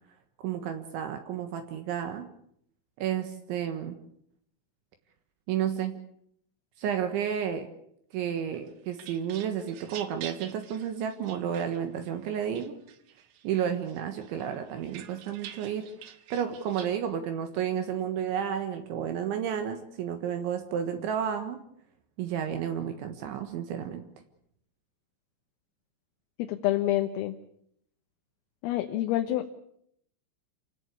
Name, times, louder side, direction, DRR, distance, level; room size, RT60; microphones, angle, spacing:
voice 1, 0.4-2.3 3.0-4.0 5.5-6.0 6.8-7.7 8.1-12.8 13.4-21.6 22.2-24.1, right 8 dB, 70° right, 7 dB, 3.6 m, -31 dB
sound 1, 8.5-12.1 12.6-13.5 13.9-17.0, right 10 dB, 90° right, 4.2 m, -47 dB
voice 2, 26.4-27.4 28.6-29.5, left 14 dB, 85° left, 6 dB, 3.8 m, -27 dB
28.0 x 17.0 x 8.4 m, 0.72 s
omnidirectional pair, 5.9 m